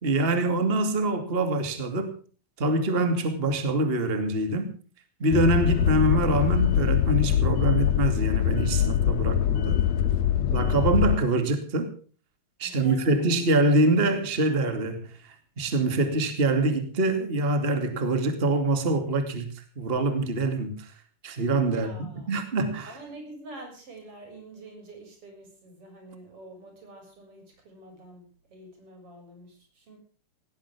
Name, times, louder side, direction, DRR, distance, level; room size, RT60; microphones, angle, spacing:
voice 1, 0.0-2.1 2.6-4.7 5.2-9.8 10.5-11.9 12.6-15.1 15.6-20.8 21.2-22.9, right 2 dB, 20° right, 7 dB, 2.3 m, -25 dB
sound 1, 5.3-11.2, left 9 dB, 70° left, 1.8 m, -23 dB
voice 2, 12.6-13.3 21.6-22.3 22.8-28.2 28.5-30.0, right 2 dB, 40° right, 3 dB, 7.5 m, -46 dB
18.5 x 18.0 x 3.6 m, 0.40 s
omnidirectional pair, 4.0 m